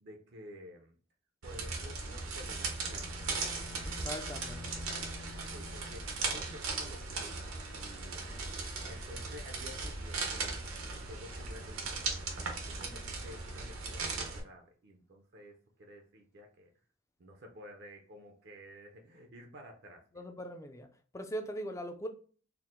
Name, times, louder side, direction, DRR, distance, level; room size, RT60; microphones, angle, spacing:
voice 1, 0.0-1.0 1.4-3.2 4.1-4.5 5.5-8.4 8.9-10.5 11.1-12.1 12.4-16.7 17.2-20.2, equal, 50° right, 3 dB, 0.5 m, -52 dB
sound 1, 1.4-14.4, right 4 dB, 80° right, 0.9 m, -38 dB
Bowed string instrument, 2.5-6.3, left 5 dB, 90° left, 0.5 m, -51 dB
voice 2, 3.8-4.9 20.1-20.9 21.1-22.1, equal, 15° left, 7 dB, 0.4 m, -41 dB
4.5 x 2.1 x 3.6 m, 0.41 s
head